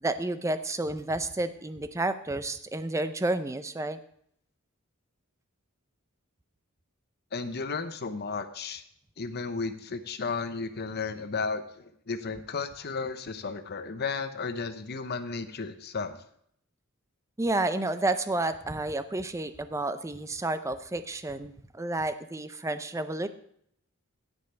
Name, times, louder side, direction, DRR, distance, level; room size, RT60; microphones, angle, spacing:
voice 1, 0.0-4.0 17.4-23.3, right 2 dB, 15° right, 11 dB, 0.5 m, -30 dB
voice 2, 7.3-8.8 9.2-16.2, left 4 dB, 50° left, 10 dB, 0.8 m, -34 dB
16.0 x 5.4 x 4.4 m, 0.68 s
head